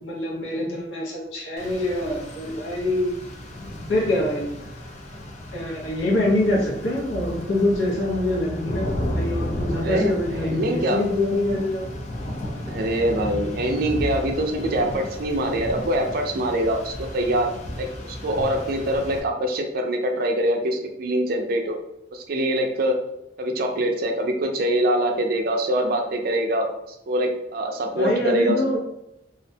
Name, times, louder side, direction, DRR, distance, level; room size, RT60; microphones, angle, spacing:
voice 1, 0.0-3.2 3.9-4.6 5.5-11.9 27.9-28.8, left 1 dB, 90° left, -3 dB, 0.8 m, -25 dB
Rain, 1.6-19.2, left 1 dB, 40° left, 0.4 m, -33 dB
voice 2, 9.7-11.0 12.7-21.8 22.1-23.0 23.4-26.7 27.1-28.6, right 1 dB, 55° right, 3 dB, 0.4 m, -24 dB
2.4 x 2.1 x 2.6 m, 0.87 s
head